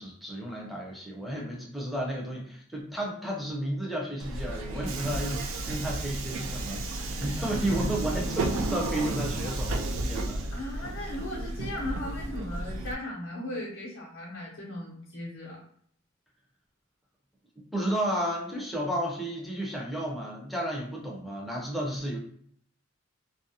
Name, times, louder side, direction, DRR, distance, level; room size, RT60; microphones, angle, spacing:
voice 1, 0.0-10.5 17.6-22.2, right 1 dB, ahead, -2 dB, 0.5 m, -32 dB
Subway metro underground, 4.2-12.9, right 2 dB, 80° right, 0.3 m, -32 dB
voice 2, 10.5-15.6, left 1 dB, 60° left, -6 dB, 0.6 m, -37 dB
2.4 x 2.0 x 2.7 m, 0.63 s
head